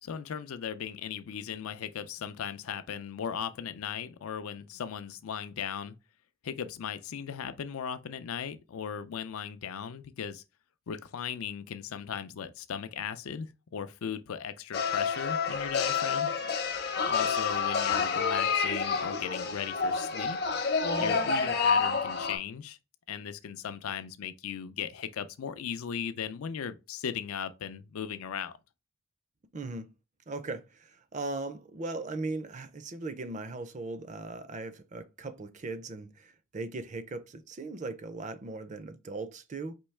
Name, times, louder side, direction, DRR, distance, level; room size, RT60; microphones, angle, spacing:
voice 1, 0.0-5.9 6.4-10.4 10.9-16.3 17.0-20.4 21.0-22.8 23.1-28.6, left 8 dB, 80° left, 0.4 m, -37 dB
sound 1, 14.7-22.4, left 5 dB, 45° left, 0.7 m, -28 dB
voice 2, 29.5-29.9 30.3-39.7, right 3 dB, 35° right, 0.4 m, -38 dB
4.5 x 3.0 x 3.2 m
head